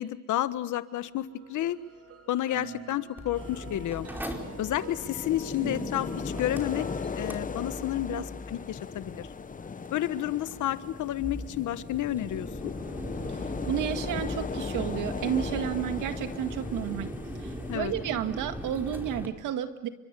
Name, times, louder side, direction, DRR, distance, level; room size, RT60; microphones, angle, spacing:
voice 1, 0.0-1.8 2.3-4.1 4.6-6.8 7.2-9.3 9.9-12.7 17.7-17.9, left 13 dB, 80° left, 12 dB, 1.4 m, -31 dB
sound 1, 1.1-7.3, right 6 dB, 50° right, 2.6 m, -46 dB
Mechanical fan, 3.2-19.3, equal, 5° right, 4.8 m, -40 dB
sound 2, 3.3-17.8, left 5 dB, 25° left, 0.8 m, -38 dB
voice 2, 13.3-17.1 17.4-19.9, right 9 dB, 90° right, 8 dB, 2.0 m, -32 dB
30.0 x 25.0 x 7.0 m, 1.1 s
cardioid pair, 90°, 30 cm